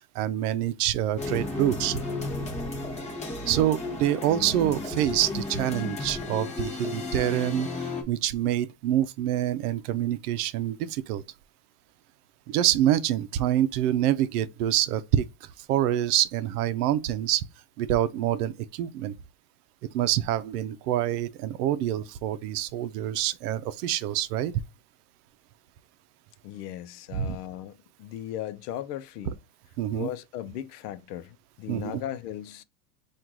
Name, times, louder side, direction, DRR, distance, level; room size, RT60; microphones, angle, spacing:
voice 1, 0.1-2.0 3.5-11.2 12.5-17.4 17.8-19.2 19.9-24.5 27.1-27.4 29.8-30.1 31.7-32.0, right 12 dB, 70° right, 0.6 m, -26 dB
sound 1, 1.2-8.0, left 3 dB, 15° left, 0.8 m, -33 dB
voice 2, 26.4-29.4 29.9-32.6, left 11 dB, 75° left, 0.7 m, -37 dB
4.5 x 2.5 x 3.7 m
supercardioid pair, 145°, 48 cm